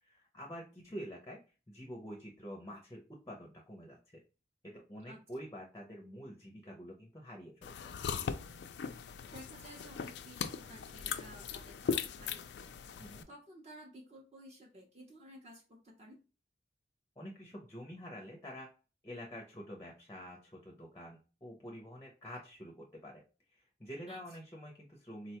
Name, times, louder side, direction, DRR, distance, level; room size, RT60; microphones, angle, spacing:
voice 1, 0.0-1.4 1.7-4.2 4.6-7.9 13.0-13.3 17.2-18.7 19.0-23.2 23.5-25.4, equal, 15° left, 0 dB, 0.5 m, -47 dB
sound 1, 7.6-13.2, left 6 dB, 80° left, 0.3 m, -39 dB
voice 2, 9.3-16.2 24.1-24.2, right 1 dB, 35° right, 1 dB, 0.6 m, -54 dB
3.8 x 2.2 x 2.8 m, 0.33 s
head